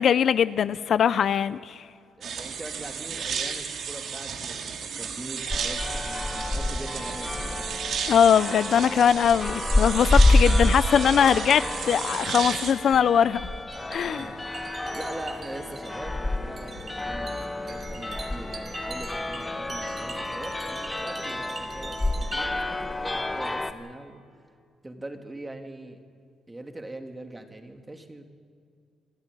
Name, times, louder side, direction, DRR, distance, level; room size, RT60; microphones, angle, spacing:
voice 1, 0.0-1.8 8.1-13.5 13.9-14.3, left 8 dB, 60° left, 16 dB, 0.5 m, -21 dB
voice 2, 2.1-7.7 14.1-24.2 24.8-26.0 26.5-28.3, right 2 dB, 15° right, 5 dB, 2.5 m, -42 dB
sound 1, 2.2-12.7, right 6 dB, 65° right, 2.5 m, -33 dB
sound 2, 5.5-23.7, left 2 dB, 15° left, 1.4 m, -28 dB
sound 3, 13.7-22.5, right 4 dB, 40° right, 3.4 m, -44 dB
26.0 x 12.5 x 9.9 m, 2.3 s
cardioid pair, 90°, 0 cm